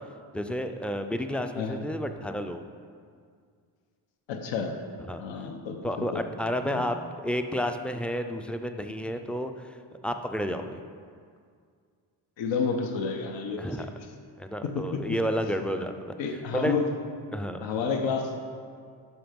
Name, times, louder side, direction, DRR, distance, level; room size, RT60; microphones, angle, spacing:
voice 1, 0.3-2.6 5.1-5.2 5.8-7.0 7.2-9.7 10.0-10.8 13.6-13.9 14.4-16.1 16.5-16.7 17.3-17.6, equal, 5° left, 7 dB, 0.3 m, -31 dB
voice 2, 4.3-4.8 5.2-6.2 6.6-6.8 12.4-13.9 14.6-15.2 16.2-16.9 17.6-18.3, left 5 dB, 85° left, 4 dB, 1.0 m, -30 dB
12.0 x 4.6 x 5.2 m, 2.1 s
cardioid pair, 110°, 44 cm